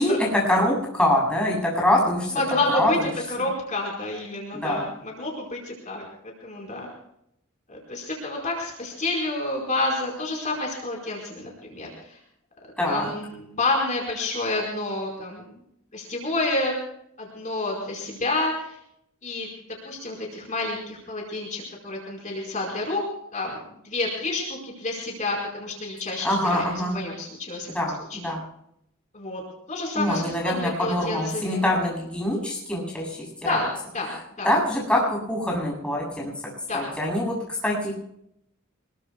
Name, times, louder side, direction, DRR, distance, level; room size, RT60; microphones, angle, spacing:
voice 1, 0.0-2.4 2.7-3.1 4.5-4.9 12.8-13.1 26.2-27.0 27.7-28.4 29.9-33.7 34.4-37.9, left 1 dB, 5° left, -3 dB, 7.7 m, -24 dB
voice 2, 2.3-3.0 3.4-6.0 6.4-6.9 7.7-12.2 12.8-15.5 15.9-16.8 17.2-18.8 19.2-19.5 19.8-23.0 23.3-27.7 28.1-28.2 29.1-29.4 29.7-31.6 33.4-33.7 33.9-34.5 36.7-36.9, left 2 dB, 40° left, -1 dB, 4.9 m, -29 dB
26.5 x 22.0 x 2.4 m, 0.75 s
head